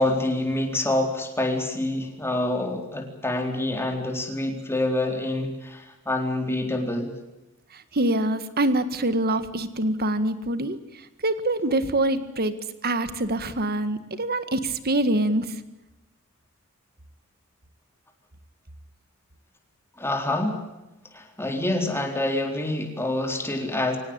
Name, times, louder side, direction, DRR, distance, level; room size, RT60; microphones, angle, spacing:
voice 1, 0.0-7.1 20.0-20.6 21.1-24.0, left 1 dB, 10° left, 3 dB, 4.0 m, -26 dB
voice 2, 7.7-15.6, right 1 dB, 45° right, 12 dB, 1.9 m, -25 dB
24.5 x 18.5 x 8.9 m, 0.96 s
head